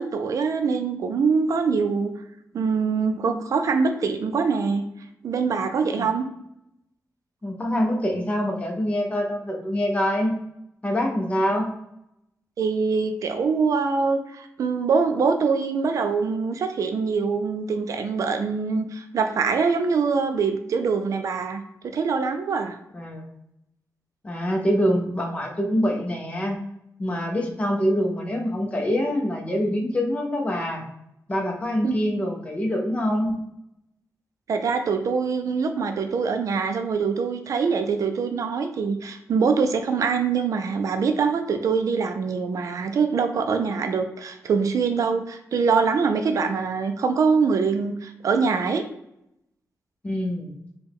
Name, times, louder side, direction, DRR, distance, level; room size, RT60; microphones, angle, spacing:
voice 1, 0.0-2.1 2.5-4.8 5.2-6.2 12.6-22.8 31.8-32.2 34.5-48.8, right 5 dB, 65° right, 7 dB, 0.4 m, -24 dB
voice 2, 7.4-10.4 10.8-11.7 22.9-23.3 24.2-26.6 27.0-30.8 31.3-33.4 50.0-50.5, equal, 20° left, 1 dB, 0.7 m, -25 dB
4.2 x 2.2 x 3.4 m, 0.81 s
wide cardioid pair, 145°, 6 cm